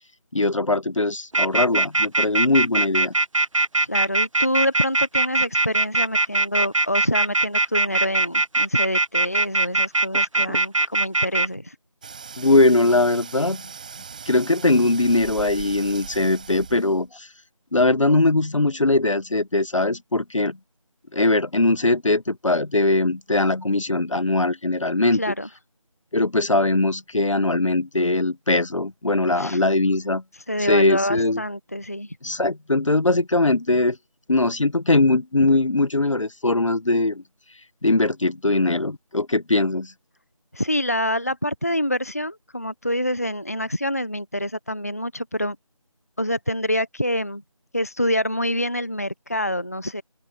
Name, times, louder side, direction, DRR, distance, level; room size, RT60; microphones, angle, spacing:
voice 1, 0.3-3.1 12.4-13.6 14.3-17.3 17.7-20.6 21.1-25.2 26.1-30.2 30.6-31.4 32.2-34.0 34.3-37.2 37.8-39.9, left 2 dB, 60° left, 1.2 m, -21 dB
sound 1, 1.3-11.5, right 2 dB, 65° right, 0.9 m, -20 dB
voice 2, 3.8-11.8 25.1-25.5 29.4-29.6 30.5-32.2 40.5-45.6 46.2-47.4 47.7-50.0, left 1 dB, 25° left, 0.7 m, -26 dB
sound 2, 12.0-17.1, right 6 dB, 15° right, 6.5 m, -39 dB
open air
figure-of-eight pair, 175°, 18 cm